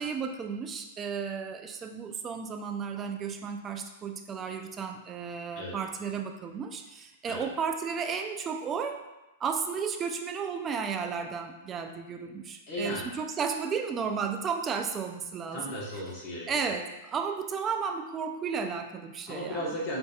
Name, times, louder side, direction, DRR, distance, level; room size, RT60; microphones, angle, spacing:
voice 1, 0.0-9.1 9.4-15.6 16.5-19.7, right 6 dB, 25° right, 5 dB, 0.4 m, -33 dB
voice 2, 12.7-13.1 15.5-16.5 19.3-20.0, equal, 40° left, -4 dB, 1.1 m, -35 dB
4.6 x 2.6 x 2.3 m, 1.0 s
hypercardioid pair, 110°, 0 cm